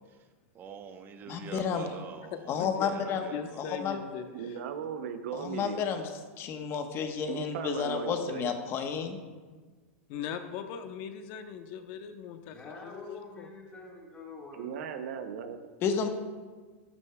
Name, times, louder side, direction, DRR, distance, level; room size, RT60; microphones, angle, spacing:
voice 1, 0.5-3.6, right 7 dB, 30° right, 6 dB, 1.0 m, -45 dB
voice 2, 1.3-1.9 2.5-3.2 3.6-4.0 5.3-6.1 6.4-9.2 15.8-16.1, left 7 dB, 35° left, 5 dB, 1.2 m, -31 dB
voice 3, 2.3-2.9 3.2-4.6 10.1-13.5, left 7 dB, 50° left, 7 dB, 1.0 m, -40 dB
voice 4, 4.3-5.8 7.3-8.5 14.5-15.6, right 7 dB, 70° right, 7 dB, 0.8 m, -37 dB
voice 5, 12.5-14.7, left 3 dB, 15° left, -4 dB, 1.9 m, -46 dB
12.5 x 10.5 x 2.4 m, 1.4 s
hypercardioid pair, 125°, 7 cm